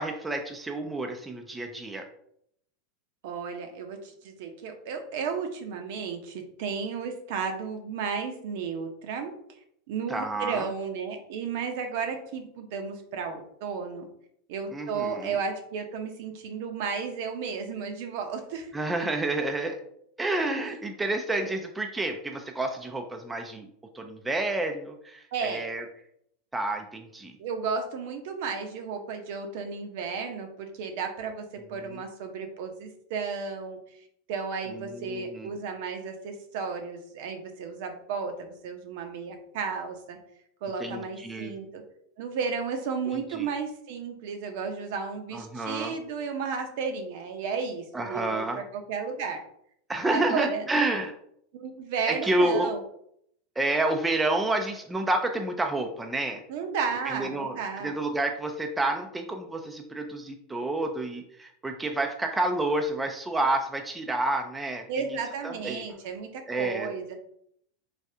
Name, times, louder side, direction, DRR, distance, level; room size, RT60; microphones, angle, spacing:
voice 1, 0.0-2.1 10.1-10.7 14.7-15.4 18.7-19.8 20.2-23.7 23.9-25.9 26.5-27.4 31.7-32.0 34.7-35.5 40.8-41.6 43.1-43.5 45.3-45.9 47.9-48.6 49.9-51.1 52.1-52.7 53.6-56.4 57.1-57.6 57.8-65.2 65.4-65.8 66.5-66.9, right 2 dB, 10° right, 4 dB, 0.4 m, -29 dB
voice 2, 3.2-9.3 9.9-14.1 14.5-18.7 20.6-20.8 25.3-25.6 27.4-34.0 34.3-40.2 40.6-41.8 42.2-49.4 50.1-50.7 51.5-52.8 56.5-58.0 64.9-67.1, right 5 dB, 65° right, 5 dB, 0.6 m, -33 dB
3.3 x 2.3 x 2.7 m, 0.70 s
hypercardioid pair, 115°, 0 cm